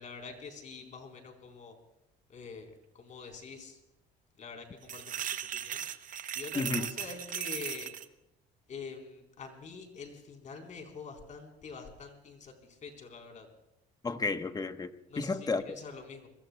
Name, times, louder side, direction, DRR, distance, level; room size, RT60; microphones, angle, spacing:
voice 1, 0.0-1.7 2.3-2.7 2.9-3.8 4.4-5.8 6.3-7.9 8.7-12.5 12.8-13.5 15.1-16.3, left 5 dB, 45° left, 4.0 m, -45 dB
sound 1, 4.8-8.1, right 9 dB, 50° right, 0.9 m, -37 dB
voice 2, 6.5-6.9 14.0-15.8, left 3 dB, 20° left, 1.1 m, -32 dB
27.0 x 21.5 x 2.3 m
cardioid pair, 110°, 17 cm